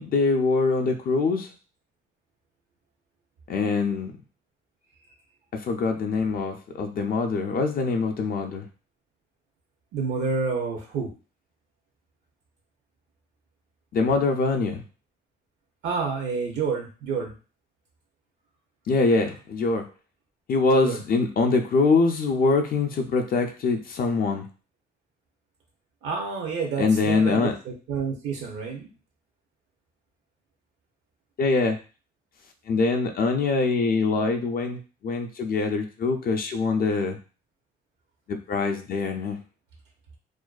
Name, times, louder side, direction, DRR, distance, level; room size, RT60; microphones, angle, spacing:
voice 1, 0.0-1.5 3.5-4.1 5.5-8.6 13.9-14.8 18.9-19.9 20.5-24.5 26.8-27.5 31.4-31.8 32.7-37.2 38.3-39.4, left 4 dB, 50° left, 4 dB, 0.4 m, -24 dB
voice 2, 9.9-11.1 15.8-17.3 20.8-21.0 26.0-28.9, right 5 dB, 75° right, 1 dB, 0.6 m, -29 dB
2.4 x 2.2 x 2.3 m, 0.35 s
cardioid pair, 90°, 20 cm